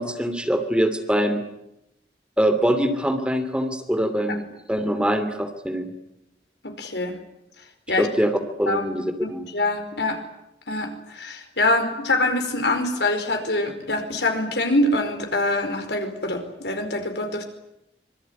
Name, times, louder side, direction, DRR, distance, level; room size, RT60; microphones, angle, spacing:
voice 1, 0.0-1.4 2.4-4.4 4.7-5.9 8.0-8.3 8.6-9.5, equal, 5° right, 6 dB, 2.8 m, -23 dB
voice 2, 6.6-7.2 7.9-8.1 8.7-10.2 10.7-17.4, left 2 dB, 70° left, 6 dB, 4.9 m, -25 dB
25.5 x 23.0 x 9.6 m, 0.83 s
head